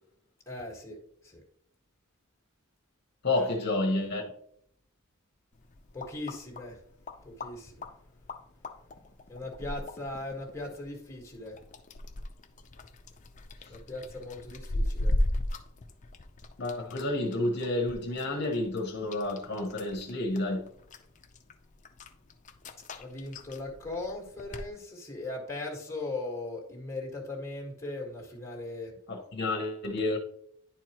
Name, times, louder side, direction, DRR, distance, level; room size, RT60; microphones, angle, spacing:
voice 1, 0.4-1.4 3.3-3.5 5.9-6.8 7.2-7.9 9.3-11.6 13.7-15.1 23.0-28.9, left 2 dB, 15° left, 1.6 m, -39 dB
voice 2, 3.2-4.2 16.6-20.7 29.1-30.2, left 2 dB, 50° left, 1.0 m, -30 dB
sound 1, 5.5-24.7, left 1 dB, 35° left, 0.5 m, -38 dB
10.5 x 4.5 x 2.9 m
head